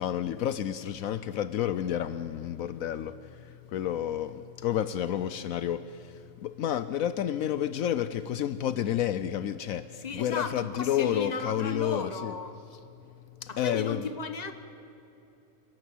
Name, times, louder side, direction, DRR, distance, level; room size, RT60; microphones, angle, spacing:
voice 1, 0.0-12.3 13.4-14.0, left 10 dB, 75° left, 13 dB, 1.0 m, -30 dB
voice 2, 10.0-12.5 13.5-14.5, left 4 dB, 30° left, 9 dB, 1.2 m, -35 dB
29.0 x 12.0 x 8.5 m, 2.9 s
omnidirectional pair, 1.5 m